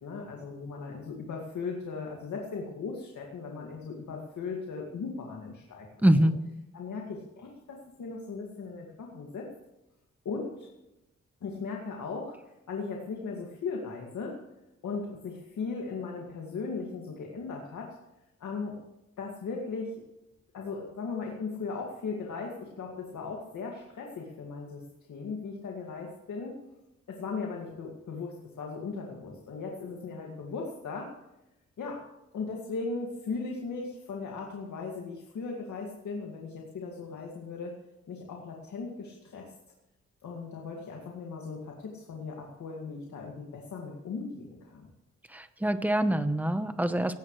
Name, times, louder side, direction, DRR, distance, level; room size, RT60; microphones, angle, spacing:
voice 1, 0.0-5.9 6.7-9.5 10.2-10.7 11.4-12.4 12.7-14.4 14.8-18.0 18.4-18.8 19.2-20.0 20.5-24.8 25.1-26.6 27.1-31.1 31.8-32.0 32.3-37.7 38.1-39.5 40.2-44.9, left 4 dB, 80° left, -1 dB, 2.3 m, -37 dB
voice 2, 6.0-6.4 45.3-47.2, right 1 dB, 5° right, 9 dB, 0.9 m, -25 dB
17.5 x 16.5 x 3.3 m, 0.93 s
wide cardioid pair, 140°, 29 cm